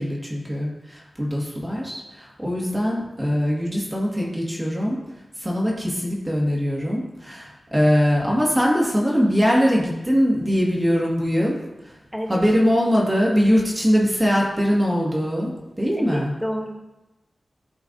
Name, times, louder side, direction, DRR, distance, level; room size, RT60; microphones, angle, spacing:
voice 1, 0.0-5.0 5.4-11.6 12.3-16.3, equal, 20° right, -3 dB, 1.8 m, -22 dB
voice 2, 16.0-16.7, equal, ahead, 1 dB, 0.9 m, -29 dB
12.5 x 4.8 x 2.6 m, 0.99 s
wide cardioid pair, 115°, 0 cm